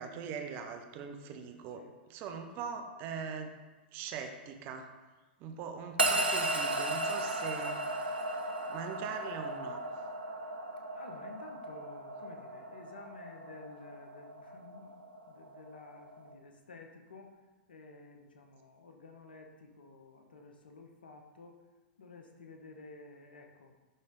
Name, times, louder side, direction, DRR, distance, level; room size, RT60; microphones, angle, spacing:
voice 1, 0.0-1.8 2.1-3.5 3.9-4.9 5.4-7.8 8.7-9.8, right 6 dB, 40° right, 6 dB, 0.9 m, -41 dB
sound 1, 6.0-16.3, right 2 dB, 85° right, 0.9 m, -36 dB
voice 2, 10.9-17.4 17.7-21.6 22.0-23.7, left 3 dB, 75° left, 3 dB, 1.1 m, -52 dB
11.0 x 3.7 x 3.9 m, 1.2 s
figure-of-eight pair, 100°, 5 cm